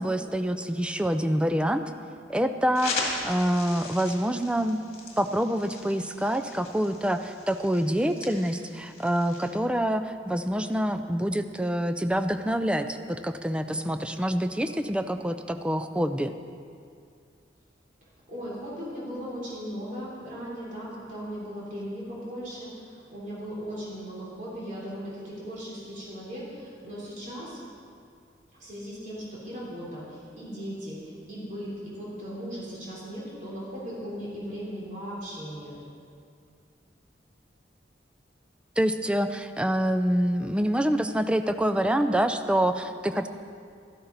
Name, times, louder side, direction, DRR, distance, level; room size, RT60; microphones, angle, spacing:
voice 1, 0.0-1.8 2.3-4.8 5.2-16.3 38.8-43.3, equal, 5° right, 8 dB, 0.4 m, -26 dB
sound 1, 2.7-9.5, left 3 dB, 40° left, 2.0 m, -38 dB
voice 2, 18.3-27.6 28.6-35.7, equal, 45° right, -7 dB, 3.6 m, -38 dB
12.5 x 12.0 x 4.0 m, 2.3 s
head